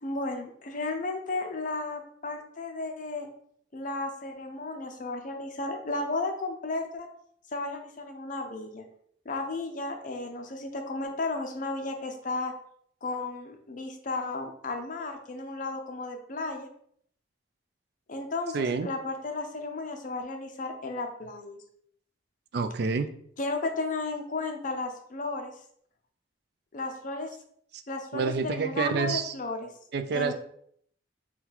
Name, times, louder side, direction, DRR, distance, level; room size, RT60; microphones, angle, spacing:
voice 1, 0.0-3.3 3.7-7.1 7.5-8.8 9.3-12.5 13.0-16.7 18.1-21.6 23.4-25.5 26.7-27.3 27.9-29.7 30.1-30.3, left 3 dB, 45° left, 5 dB, 0.5 m, -34 dB
voice 2, 18.5-18.9 22.5-23.1 28.1-29.3 29.9-30.3, right 5 dB, 60° right, 9 dB, 0.4 m, -28 dB
4.3 x 2.3 x 3.9 m, 0.65 s
head